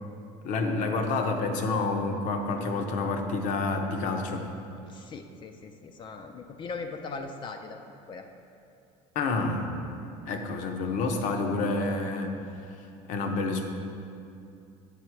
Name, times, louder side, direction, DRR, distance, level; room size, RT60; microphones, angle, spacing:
voice 1, 0.4-4.5 9.1-9.7 10.2-12.4 13.1-13.7, left 3 dB, 60° left, 4 dB, 0.7 m, -28 dB
voice 2, 4.9-7.8 8.1-8.2, left 4 dB, 35° left, 5 dB, 0.4 m, -39 dB
8.4 x 4.0 x 4.5 m, 2.5 s
cardioid pair, 125°, 15 cm